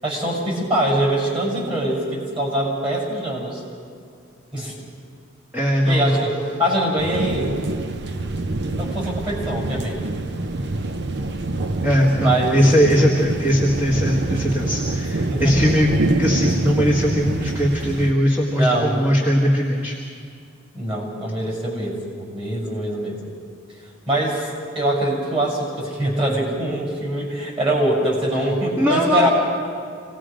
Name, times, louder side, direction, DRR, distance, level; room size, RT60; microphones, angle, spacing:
voice 1, 0.0-3.6 4.5-4.8 5.8-7.5 8.8-10.0 12.1-12.9 15.3-15.6 18.5-19.0 20.7-23.2 23.8-24.5 24.7-29.3, right 1 dB, 25° right, -2 dB, 6.3 m, -23 dB
voice 2, 5.5-6.2 11.8-15.9 16.2-20.0 28.8-29.3, equal, 10° right, -4 dB, 1.7 m, -19 dB
sound 1, 7.0-18.1, right 2 dB, 55° right, 0.7 m, -26 dB
27.0 x 19.0 x 5.1 m, 2.3 s
head